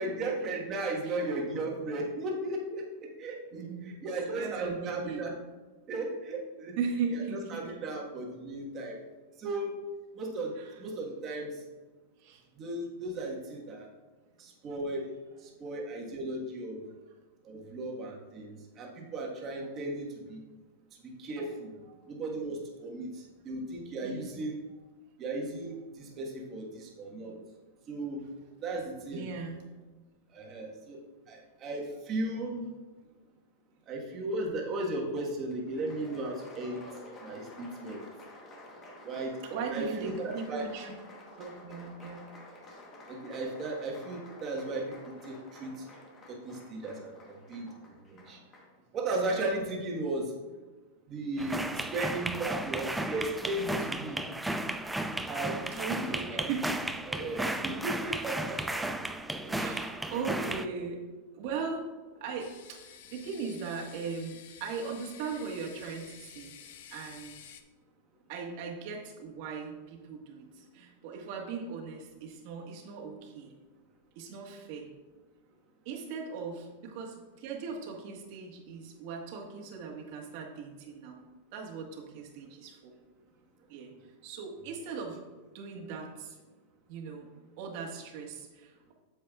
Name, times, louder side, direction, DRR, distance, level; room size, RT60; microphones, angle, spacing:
voice 1, 0.0-5.3 5.9-6.8 7.1-9.0 9.4-9.8 10.1-11.6 12.5-13.9 14.4-15.1 15.4-16.8 17.4-20.4 21.0-21.7 22.1-24.6 25.2-27.4 27.9-28.2 28.6-29.2 30.3-32.7 33.9-36.8 37.2-38.0 39.0-39.3 39.7-40.7 43.1-45.9 46.3-48.4 48.9-50.3 51.1-54.2 55.3-56.5 57.1-58.6 59.0-59.1 59.4-59.7 60.3-60.5, right 2 dB, 25° right, -1 dB, 1.5 m, -36 dB
voice 2, 3.5-5.4 6.8-7.7 10.6-10.8 12.2-12.4 21.9-22.0 24.0-24.3 27.1-27.3 29.1-29.7 39.5-40.9 41.4-42.3 55.8-57.0 59.4-61.0 61.3-61.9 62.2-66.6 66.9-67.3 68.3-73.5 74.1-74.9 75.8-81.3 81.5-82.9 83.7-83.9 84.2-85.2 85.5-86.4 86.9-87.3 87.6-88.9, right 5 dB, 50° right, 0 dB, 1.6 m, -39 dB
Applause, 35.5-48.8, left 1 dB, 25° left, 1.2 m, -51 dB
sound 1, 51.4-60.7, right 1 dB, 5° right, 0.3 m, -34 dB
sound 2, 62.4-67.6, left 9 dB, 60° left, 0.7 m, -51 dB
8.7 x 7.4 x 2.4 m, 1.3 s
supercardioid pair, 150°, 0 cm